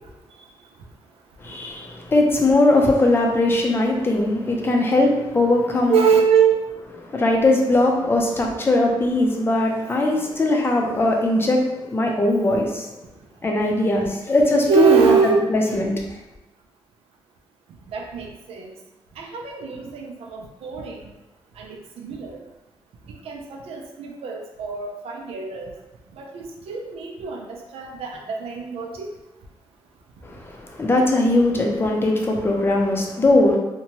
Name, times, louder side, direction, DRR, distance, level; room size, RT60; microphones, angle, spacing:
voice 1, 1.4-6.0 7.1-12.9 13.4-15.1 15.5-15.9 30.2-33.6, left 2 dB, 25° left, 0 dB, 0.5 m, -20 dB
voice 2, 5.9-6.6 14.6-15.4 17.9-18.6 19.2-21.0 21.6-21.7 22.0-22.4 23.3-25.7 26.2-29.1, right 7 dB, 85° right, 0 dB, 0.5 m, -23 dB
2.7 x 2.2 x 2.9 m, 1.0 s
cardioid pair, 125°, 10 cm